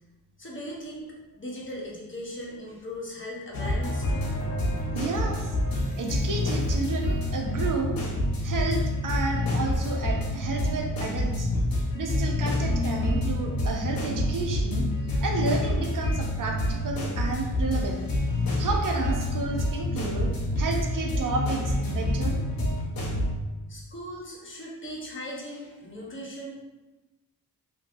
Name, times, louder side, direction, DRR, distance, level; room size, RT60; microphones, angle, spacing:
voice 1, 0.4-4.3 23.7-26.5, equal, 35° left, -4 dB, 1.0 m, -38 dB
sound 1, 3.5-23.3, left 1 dB, 70° left, 0.8 m, -27 dB
voice 2, 4.9-5.5 6.0-8.0 8.4-11.5 11.9-14.9 15.2-18.0 18.6-22.4, right 3 dB, 60° right, 2 dB, 0.6 m, -31 dB
3.0 x 2.5 x 2.6 m, 1.1 s
cardioid pair, 50°, 37 cm